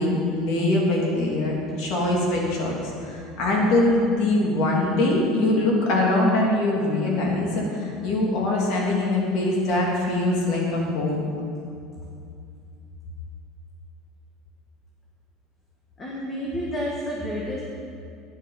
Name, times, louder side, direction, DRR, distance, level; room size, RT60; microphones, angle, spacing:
voice 1, 0.0-11.3, left 2 dB, 55° left, -2 dB, 3.0 m, -23 dB
voice 2, 16.0-17.6, equal, 20° left, -3 dB, 1.4 m, -30 dB
12.0 x 10.0 x 5.8 m, 2.5 s
cardioid pair, 170°, 0 cm